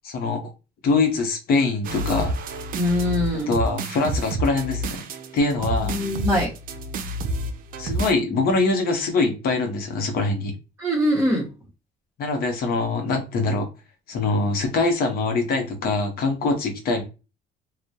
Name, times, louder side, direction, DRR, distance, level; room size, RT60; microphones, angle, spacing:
voice 1, 0.0-0.4 0.8-2.4 3.5-5.1 5.3-6.0 7.8-10.5 12.2-13.7 14.1-17.0, left 3 dB, 60° left, 4 dB, 0.7 m, -23 dB
sound 1, 1.8-8.1, right 1 dB, 55° right, 0.4 m, -29 dB
voice 2, 2.7-3.5 5.6-6.5 10.8-11.5, left 1 dB, 15° right, -4 dB, 0.8 m, -23 dB
2.2 x 2.0 x 2.7 m, 0.29 s
cardioid pair, 110°, 17 cm